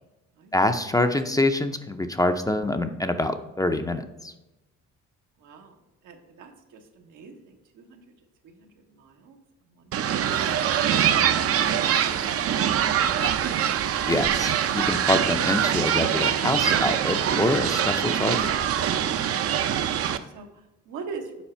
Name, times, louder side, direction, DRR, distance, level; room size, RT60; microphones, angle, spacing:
voice 1, 0.5-4.3 14.1-18.5, left 1 dB, 10° left, 8 dB, 0.4 m, -25 dB
voice 2, 5.4-9.4 9.6-10.8 11.3-11.7 12.0-13.3 19.1-21.4, right 5 dB, 85° right, 3 dB, 1.1 m, -44 dB
newjersey OC wonderlandagain, 9.9-20.2, right 9 dB, 50° right, 0.5 m, -24 dB
7.2 x 4.8 x 4.3 m, 1.0 s
cardioid pair, 90°, 30 cm